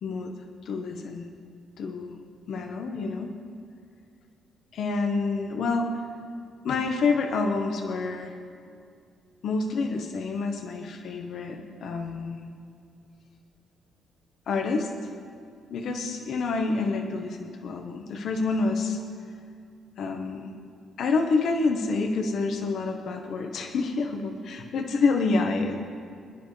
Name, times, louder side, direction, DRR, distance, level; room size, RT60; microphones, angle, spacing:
voice 1, 0.0-0.3 0.6-1.3 1.8-2.2 2.5-3.3 4.7-5.9 6.6-8.4 9.4-12.5 14.5-15.1 15.7-19.0 20.0-20.5 21.0-25.8, left 4 dB, 65° left, 3 dB, 1.2 m, -28 dB
26.5 x 10.5 x 3.3 m, 2.3 s
cardioid pair, 90°, 0 cm